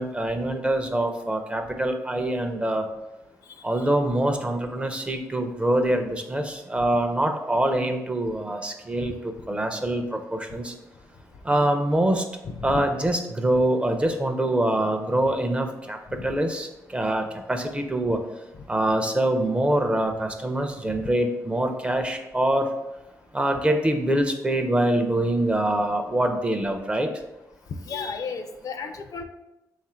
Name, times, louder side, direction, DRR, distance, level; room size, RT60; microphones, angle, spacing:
voice 1, 0.0-2.9 3.6-10.7 11.4-12.2 12.6-18.2 18.7-22.7 23.3-27.1, right 1 dB, 15° right, 5 dB, 0.5 m, -24 dB
voice 2, 12.4-12.8 27.9-29.2, left 5 dB, 65° left, 7 dB, 0.4 m, -33 dB
3.5 x 2.4 x 4.3 m, 0.94 s
cardioid pair, 90°, 7 cm